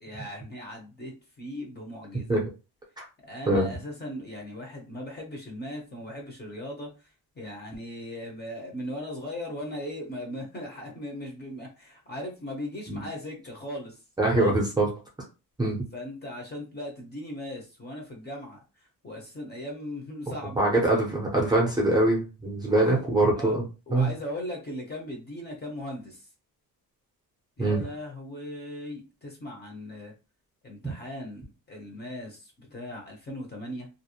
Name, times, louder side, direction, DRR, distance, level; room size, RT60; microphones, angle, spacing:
voice 1, 0.0-2.4 3.2-6.9 7.4-14.0 14.3-14.6 15.9-18.6 19.0-20.8 22.6-23.0 23.3-23.6 23.9-26.3 27.6-30.1 30.6-33.9, left 1 dB, 25° left, 0 dB, 0.7 m, -38 dB
voice 2, 14.2-14.9 15.6-15.8 20.3-23.6 23.9-24.1 27.6-27.8 30.8-30.9, right 2 dB, 10° right, -3 dB, 0.6 m, -23 dB
2.5 x 2.0 x 2.7 m, 0.30 s
wide cardioid pair, 170°, 38 cm